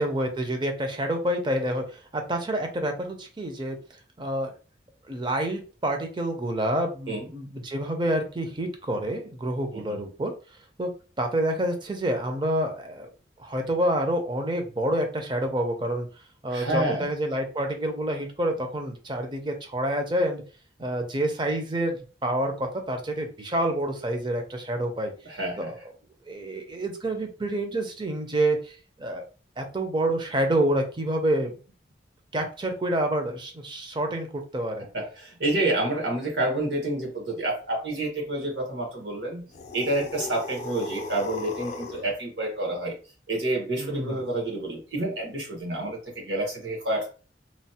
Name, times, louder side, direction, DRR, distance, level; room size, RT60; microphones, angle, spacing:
voice 1, 0.0-3.8 4.2-4.5 5.1-10.3 10.8-10.9 11.2-13.1 13.4-16.1 16.4-20.4 20.8-25.1 25.6-25.7 26.3-29.2 29.6-31.6 32.3-34.3 34.5-34.9 43.8-44.2, right 1 dB, 25° right, 4 dB, 0.5 m, -28 dB
voice 2, 16.5-17.1 25.2-25.8 34.9-39.5 39.7-43.0 43.3-47.1, right 1 dB, 75° right, -1 dB, 1.2 m, -29 dB
sound 1, 39.5-42.1, left 3 dB, 40° left, 0.4 m, -36 dB
3.0 x 2.0 x 2.8 m, 0.36 s
head